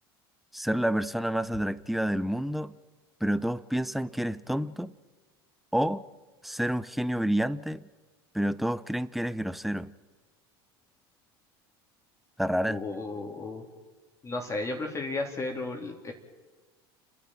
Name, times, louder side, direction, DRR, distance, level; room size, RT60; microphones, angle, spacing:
voice 1, 0.5-2.7 3.2-4.9 5.7-6.0 6.4-7.8 8.3-9.9 12.4-12.8, equal, ahead, 16 dB, 0.8 m, -29 dB
voice 2, 12.7-13.6 14.2-16.1, left 2 dB, 20° left, 1 dB, 3.2 m, -34 dB
30.0 x 10.5 x 8.9 m, 1.3 s
hypercardioid pair, 85°, 13 cm